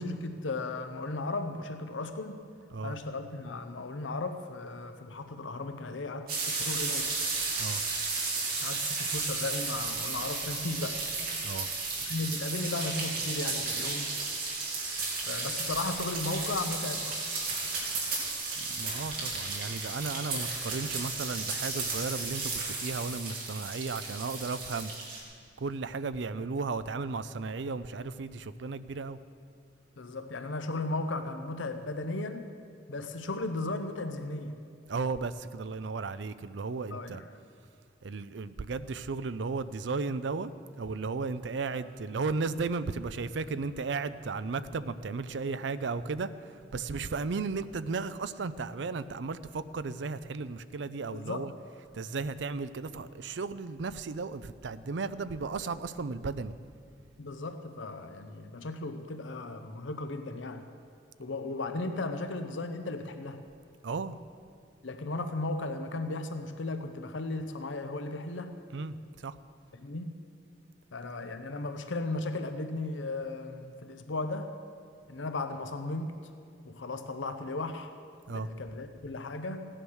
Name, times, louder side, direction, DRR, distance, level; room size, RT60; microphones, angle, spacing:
voice 1, 0.0-2.4 2.8-7.1 8.6-11.0 12.0-14.1 15.3-17.5 20.3-20.5 30.0-32.5 32.9-34.6 36.9-37.2 51.1-51.5 57.2-60.7 61.2-63.4 64.8-68.6 69.7-70.2 70.9-74.5 75.1-76.1 76.6-77.9 78.3-79.7, left 2 dB, 90° left, 8 dB, 0.8 m, -36 dB
sound 1, 6.3-25.2, right 3 dB, 50° right, 3.0 m, -34 dB
voice 2, 18.6-24.9 25.6-29.2 34.9-37.2 38.0-40.5 40.8-51.5 51.9-56.5 63.8-64.2 68.7-69.4 78.3-78.5, right 4 dB, 70° right, 13 dB, 0.5 m, -35 dB
16.0 x 10.0 x 6.3 m, 2.3 s
head